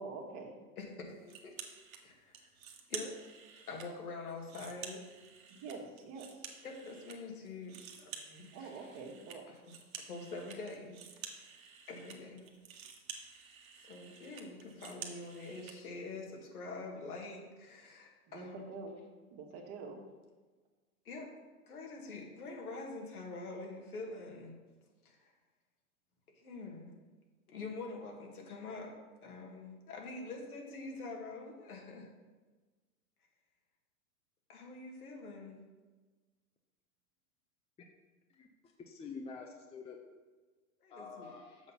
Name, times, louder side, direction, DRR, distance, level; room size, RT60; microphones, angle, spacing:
voice 1, 0.0-0.6 5.5-6.5 8.5-9.5 18.3-19.0 19.3-20.0, right 4 dB, 45° right, 1 dB, 1.7 m, -46 dB
voice 2, 0.8-1.6 2.0-2.3 2.9-3.2 3.7-5.0 6.6-8.7 9.5-9.7 10.1-11.5 11.9-12.6 13.8-18.7 21.1-21.3 21.6-24.5 25.0-25.3 26.3-26.9 27.5-28.9 29.2-32.1 34.5-35.6 40.8-41.3, left 3 dB, 85° left, 1 dB, 2.0 m, -45 dB
sound 1, 1.3-2.0 2.3-3.9 4.3-7.2 7.4-15.8, right 7 dB, 70° right, 1.4 m, -50 dB
voice 3, 38.8-40.0 40.9-41.4, left 4 dB, 15° left, 2 dB, 0.7 m, -47 dB
7.2 x 5.7 x 5.6 m, 1.3 s
hypercardioid pair, 105°, 43 cm